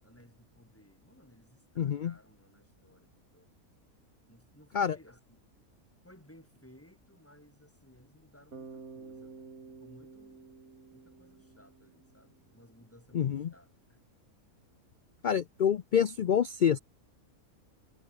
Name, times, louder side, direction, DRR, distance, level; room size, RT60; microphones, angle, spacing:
voice 1, 0.0-3.5 4.3-5.4 6.0-10.4 10.9-14.0, equal, 10° left, 6.2 m, -59 dB
voice 2, 1.8-2.1 4.7-5.0 13.1-13.5 15.2-16.8, left 8 dB, 70° left, 0.4 m, -27 dB
Bass guitar, 8.5-12.5, right 4 dB, 75° right, 3.0 m, -50 dB
omnidirectional pair, 1.5 m